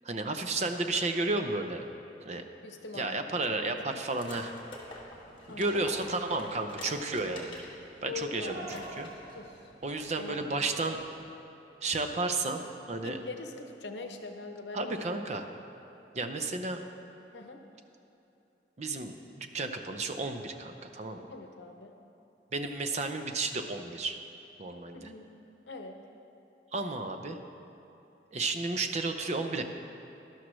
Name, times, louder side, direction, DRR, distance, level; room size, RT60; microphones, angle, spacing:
voice 1, 0.0-1.9 2.2-2.4 2.9-4.5 5.5-7.6 8.0-9.1 9.8-11.0 11.8-13.2 14.7-15.4 16.1-16.8 18.8-21.3 22.5-24.2 24.6-25.1 26.7-27.4 28.3-29.6, right 3 dB, 40° right, 7 dB, 0.6 m, -32 dB
voice 2, 2.6-3.1 3.6-3.7 5.5-5.9 8.0-9.1 9.3-9.7 10.2-10.5 13.0-15.0 17.3-17.6 21.3-21.9 24.9-25.3 25.7-26.0, left 3 dB, 80° left, 5 dB, 0.8 m, -42 dB
sound 1, 4.1-7.7 8.2-8.3 8.6-9.4, left 2 dB, 30° left, 1.4 m, -46 dB
sound 2, 4.8-11.3, right 1 dB, 80° right, 2.4 m, -50 dB
12.0 x 11.5 x 3.2 m, 2.9 s
head